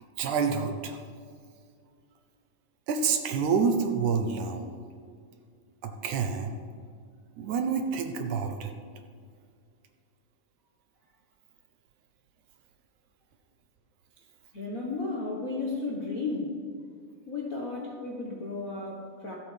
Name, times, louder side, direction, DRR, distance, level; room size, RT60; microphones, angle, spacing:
voice 1, 0.2-1.0 2.9-4.7 5.8-6.6 7.4-8.7, right 5 dB, 75° right, 6 dB, 2.0 m, -28 dB
voice 2, 14.5-16.5 17.3-19.3, left 3 dB, 60° left, -2 dB, 0.8 m, -34 dB
24.5 x 8.3 x 3.4 m, 2.1 s
omnidirectional pair, 3.9 m